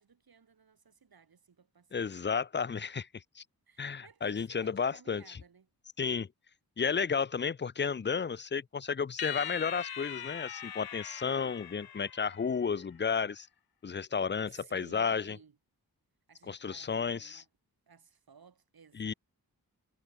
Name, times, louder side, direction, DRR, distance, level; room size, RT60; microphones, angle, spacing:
voice 1, 0.0-2.3 2.7-3.0 3.7-5.7 14.5-15.6 16.3-17.5 17.9-19.2, right 6 dB, 70° right, 3.4 m, -58 dB
voice 2, 1.9-3.0 3.4-3.5 3.8-5.4 6.0-6.3 6.8-13.5 13.8-15.4 16.5-17.4 19.0-19.1, left 6 dB, 30° left, 0.5 m, -32 dB
sound 1, 9.2-12.7, left 9 dB, 75° left, 1.0 m, -41 dB
wide cardioid pair, 85°, 37 cm